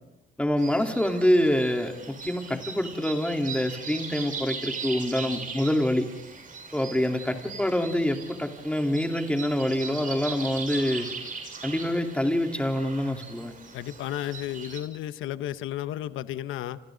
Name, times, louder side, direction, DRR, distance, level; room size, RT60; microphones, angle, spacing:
voice 1, 0.4-6.1 6.7-11.1 11.6-13.5, left 1 dB, 5° left, 3 dB, 3.6 m, -26 dB
sound 1, 0.6-14.8, right 5 dB, 45° right, 7.4 m, -39 dB
voice 2, 13.7-16.8, left 12 dB, 85° left, 12 dB, 1.0 m, -33 dB
29.0 x 27.0 x 4.0 m, 0.94 s
cardioid pair, 90°, 20 cm